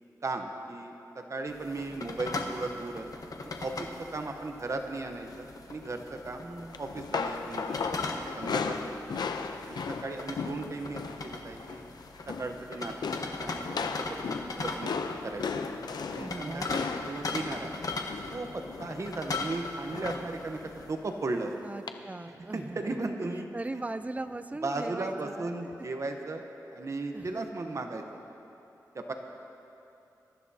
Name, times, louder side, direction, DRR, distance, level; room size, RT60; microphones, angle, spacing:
voice 1, 0.2-3.1 3.6-6.4 6.8-7.8 8.1-9.3 9.7-11.9 12.3-14.9 15.2-15.4 16.1-17.7 18.3-21.5 22.5-23.5 23.7-23.8 24.6-26.5 26.7-28.0 28.9-29.1, right 2 dB, 45° right, 4 dB, 0.9 m, -36 dB
sound 1, 1.5-20.9, left 3 dB, 60° left, 1.1 m, -39 dB
voice 2, 6.4-6.8 16.2-16.8 21.6-23.1 23.5-25.7 27.1-27.5, right 2 dB, 20° right, 11 dB, 0.5 m, -39 dB
sound 2, 6.7-11.3 11.5-11.9 12.2-12.6 13.0-19.0 19.9-20.3 20.6-20.8 21.9-22.0, left 5 dB, 80° left, 0.6 m, -36 dB
22.0 x 13.5 x 2.8 m, 2.8 s
wide cardioid pair, 100°, 7 cm